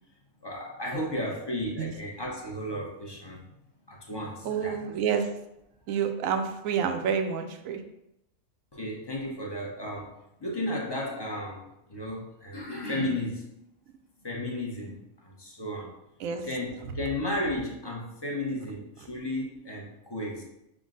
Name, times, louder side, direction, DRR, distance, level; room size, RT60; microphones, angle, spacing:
voice 1, 0.4-3.5 3.9-4.8 8.7-13.4 14.2-15.9 16.4-20.4, left 1 dB, 25° left, -2 dB, 0.6 m, -34 dB
voice 2, 4.4-5.3 5.9-7.8 16.2-16.4, right 7 dB, 75° right, 6 dB, 1.0 m, -28 dB
6.0 x 2.1 x 3.7 m, 0.84 s
omnidirectional pair, 1.4 m